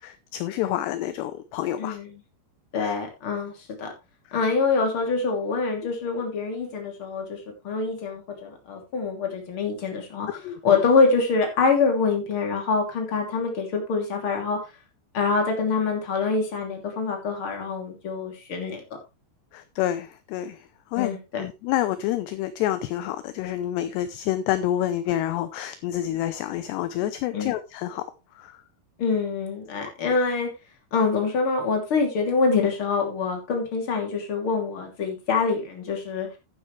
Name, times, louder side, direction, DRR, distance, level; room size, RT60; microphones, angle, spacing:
voice 1, 0.0-2.0 2.8-2.9 10.3-10.8 19.5-21.1 21.4-28.0 28.4-28.6 29.8-29.9, left 12 dB, 80° left, 12 dB, 2.5 m, -28 dB
voice 2, 1.8-2.2 2.7-3.9 4.3-10.3 10.6-14.6 15.1-18.8 21.0-21.4 27.3-27.5 29.0-30.5 30.9-36.3, left 4 dB, 30° left, 3 dB, 3.1 m, -25 dB
11.0 x 9.9 x 3.3 m, 0.26 s
omnidirectional pair, 5.4 m